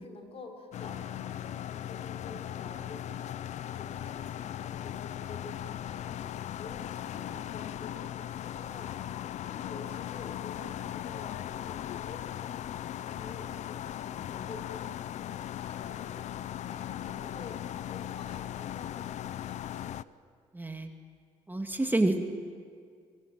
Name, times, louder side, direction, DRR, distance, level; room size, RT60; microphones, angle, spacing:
voice 1, 0.0-20.0, left 3 dB, 55° left, 3 dB, 5.2 m, -49 dB
sound 1, 0.7-20.0, left 11 dB, 70° left, 0.6 m, -38 dB
voice 2, 20.5-20.9 21.5-22.2, right 2 dB, 15° right, 4 dB, 2.7 m, -28 dB
24.5 x 21.5 x 9.3 m, 2.1 s
supercardioid pair, 70°, 12 cm